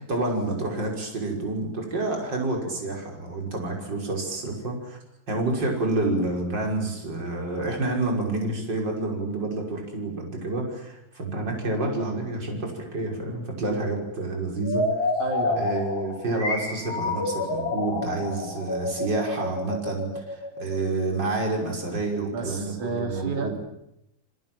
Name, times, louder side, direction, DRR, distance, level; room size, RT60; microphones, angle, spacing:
voice 1, 0.1-5.0 5.3-15.1 15.6-23.7, right 2 dB, 35° right, 0 dB, 6.2 m, -29 dB
sound 1, 14.6-21.3, left 2 dB, 55° left, 6.1 m, -29 dB
voice 2, 15.2-15.7 22.3-23.7, right 4 dB, 85° right, 3 dB, 4.9 m, -31 dB
29.0 x 24.0 x 7.7 m, 0.82 s
omnidirectional pair, 3.3 m